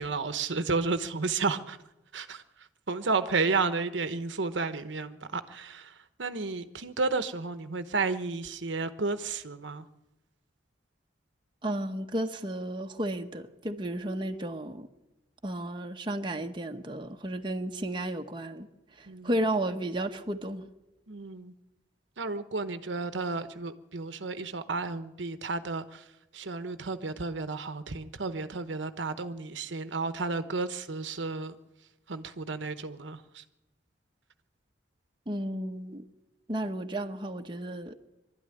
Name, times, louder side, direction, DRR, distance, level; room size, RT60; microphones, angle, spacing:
voice 1, 0.0-1.8 2.1-9.9 19.1-19.3 21.1-21.5 22.2-26.1 26.3-31.6 32.1-33.4, right 4 dB, 80° right, 1.0 m, -32 dB
voice 2, 11.6-14.9 15.4-18.7 19.0-20.7 35.3-36.0 36.5-38.0, right 1 dB, 25° right, 1.1 m, -33 dB
23.5 x 12.5 x 9.9 m
head